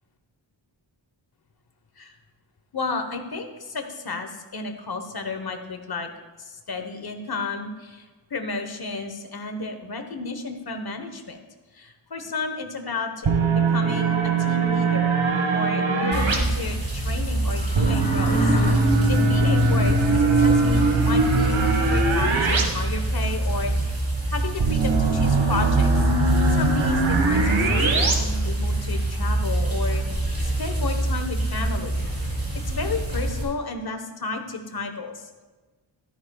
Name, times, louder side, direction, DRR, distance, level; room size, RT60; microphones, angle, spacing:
voice 1, 2.7-6.1 6.4-11.4 11.7-15.2 15.5-23.7 24.3-26.1 26.5-31.9 32.7-35.4, left 3 dB, 50° left, 6 dB, 1.3 m, -32 dB
sound 1, 13.2-16.4 17.7-22.6 22.9-23.0 24.6-28.1, right 3 dB, 90° right, 1.8 m, -21 dB
sound 2, 16.1-33.4, right 1 dB, 30° right, 4.0 m, -26 dB
sound 3, 17.3-18.7, equal, 20° left, 1.5 m, -30 dB
14.5 x 13.0 x 2.4 m, 1.3 s
wide cardioid pair, 135°, 46 cm